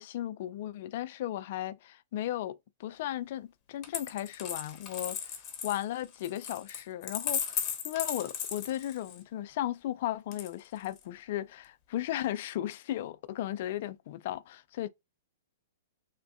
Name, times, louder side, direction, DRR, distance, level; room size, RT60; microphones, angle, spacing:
voice 1, 0.0-14.9, left 13 dB, 55° left, 0.3 m, -36 dB
Coin (dropping), 3.8-9.2 10.3-11.0, left 8 dB, 30° left, 0.7 m, -36 dB
3.5 x 2.1 x 2.5 m
hypercardioid pair, 130°, 0 cm